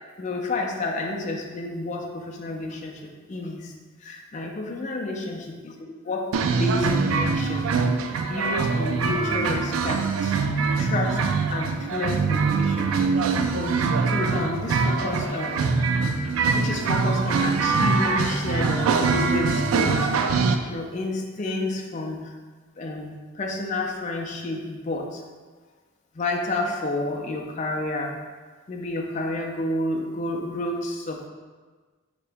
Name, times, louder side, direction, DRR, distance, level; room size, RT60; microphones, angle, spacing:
voice 1, 0.2-3.7 4.0-5.7 6.0-6.3 6.6-7.7 8.1-10.3 10.8-11.2 11.5-13.0 13.3-15.8 16.5-20.1 20.6-22.4 22.8-25.2 26.1-28.2 28.7-31.3, left 2 dB, 35° left, 0 dB, 0.4 m, -30 dB
sound 1, 6.3-20.5, right 4 dB, 85° right, 0.3 m, -23 dB
4.5 x 2.9 x 3.3 m, 1.4 s
head